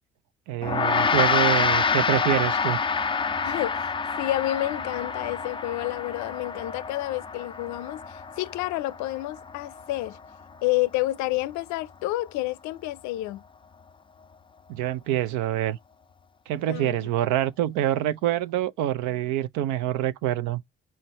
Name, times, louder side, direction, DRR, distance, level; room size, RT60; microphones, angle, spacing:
voice 1, 0.5-2.8 14.7-15.8 16.5-20.6, right 13 dB, 70° right, 0.5 m, -26 dB
Gong, 0.6-10.3, left 5 dB, 15° left, 0.4 m, -27 dB
voice 2, 3.4-10.2 10.6-13.4 16.7-17.0, left 16 dB, 65° left, 0.5 m, -29 dB
4.5 x 3.8 x 2.9 m
hypercardioid pair, 50°, 31 cm